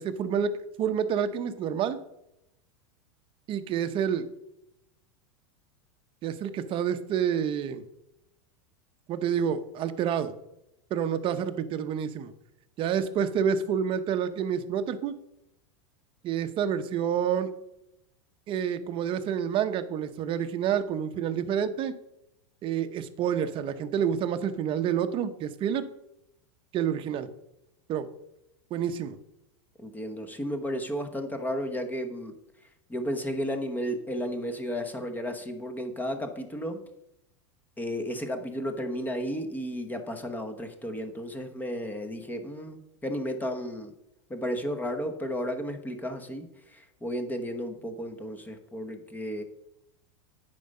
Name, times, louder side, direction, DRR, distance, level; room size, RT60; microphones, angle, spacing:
voice 1, 0.0-2.0 3.5-4.3 6.2-7.8 9.1-10.3 10.9-12.3 12.8-15.1 16.2-17.5 18.5-21.9 22.6-25.9 26.7-27.3 27.9-28.1 28.7-29.2, right 8 dB, 35° right, 10 dB, 0.8 m, -28 dB
voice 2, 29.8-36.8 37.8-43.9 44.3-49.4, equal, 10° left, 7 dB, 1.0 m, -33 dB
9.2 x 5.3 x 5.4 m, 0.84 s
supercardioid pair, 130°, 16 cm